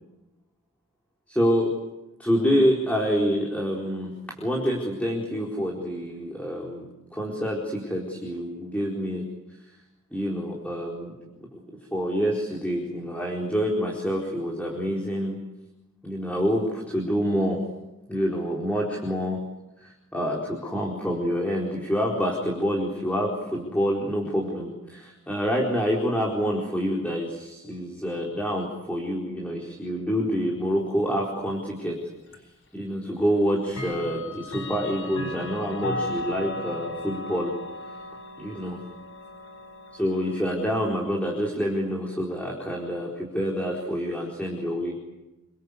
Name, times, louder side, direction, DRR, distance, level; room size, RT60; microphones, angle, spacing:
voice 1, 1.3-1.7 2.2-4.1 4.4-9.2 10.1-11.1 11.5-11.6 11.9-15.4 16.0-17.6 18.1-19.4 19.8-32.0 32.7-37.5 38.4-38.8 39.9-45.0, equal, 5° left, -2 dB, 4.3 m, -27 dB
Clock, 32.3-32.4 33.7-40.5, left 2 dB, 55° left, 4.5 m, -36 dB
29.0 x 24.5 x 8.3 m, 0.98 s
head